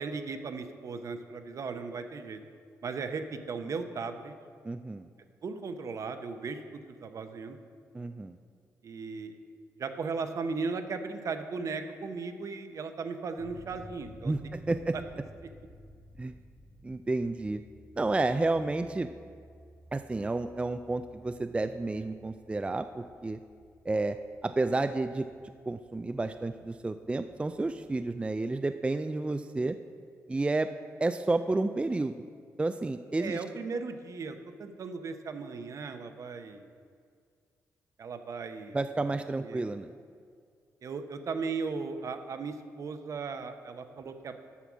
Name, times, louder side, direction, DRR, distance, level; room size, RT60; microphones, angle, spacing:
voice 1, 0.0-2.4 2.8-4.3 5.4-7.6 8.8-9.4 9.8-14.3 14.9-15.0 18.1-18.2 33.2-36.7 38.0-39.7 40.8-44.3, right 4 dB, 55° right, 7 dB, 0.8 m, -37 dB
voice 2, 4.6-5.1 7.9-8.4 14.2-14.9 16.2-16.3 16.8-17.6 18.0-19.1 19.9-23.4 23.9-24.2 24.4-25.3 25.7-29.8 30.3-30.7 31.0-32.2 32.6-33.4 38.7-39.9, right 2 dB, 20° right, 9 dB, 0.3 m, -30 dB
sound 1, 13.4-28.4, equal, 10° left, 1.1 m, -55 dB
8.2 x 5.8 x 6.2 m, 2.1 s
cardioid pair, 65°, 6 cm